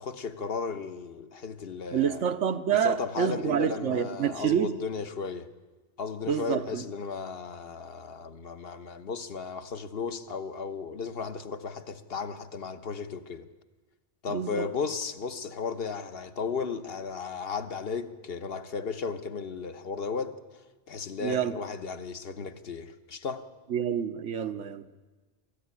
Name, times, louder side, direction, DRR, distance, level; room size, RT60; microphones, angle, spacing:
voice 1, 0.0-2.2 2.7-5.5 6.0-13.5 14.2-20.3 20.9-23.5, left 5 dB, 55° left, 1.3 m, -35 dB
voice 2, 1.9-4.8 6.3-6.8 14.3-14.7 21.2-21.6 23.7-25.1, right 8 dB, 80° right, 1.3 m, -28 dB
23.5 x 14.5 x 9.8 m
omnidirectional pair, 1.2 m